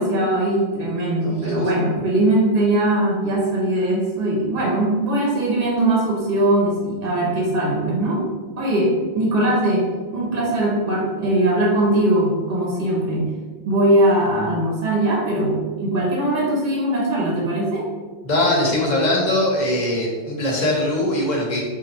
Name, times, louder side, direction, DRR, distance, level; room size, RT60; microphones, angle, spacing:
voice 1, 0.0-8.2 8.6-13.3 13.6-17.9, right 1 dB, 50° right, -3 dB, 1.0 m, -20 dB
voice 2, 18.2-21.6, left 1 dB, 40° left, -2 dB, 0.9 m, -21 dB
3.2 x 2.7 x 4.1 m, 1.4 s
omnidirectional pair, 1.2 m